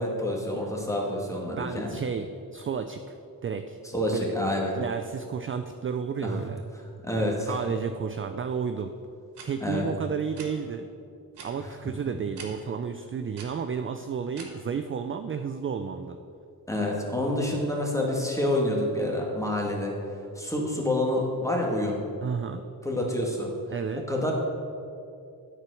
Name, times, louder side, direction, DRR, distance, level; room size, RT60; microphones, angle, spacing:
voice 1, 0.0-1.9 3.9-4.7 6.2-6.4 7.0-7.6 9.6-9.9 11.6-11.7 16.7-19.9 20.3-22.0 22.8-23.5 23.9-24.3, left 1 dB, 10° left, -1 dB, 1.8 m, -28 dB
voice 2, 1.5-3.1 3.4-3.8 4.1-4.4 4.7-6.6 7.2-8.9 9.4-10.9 11.4-16.2 22.2-22.6 23.7-24.0, right 6 dB, 35° right, 8 dB, 0.4 m, -32 dB
sound 1, 9.3-9.5 10.3-10.5 11.3-11.5 12.3-12.5 13.3-13.5 14.3-14.5, right 5 dB, 85° right, 1.3 m, -42 dB
8.8 x 4.6 x 6.2 m, 2.5 s
cardioid pair, 75°, 40 cm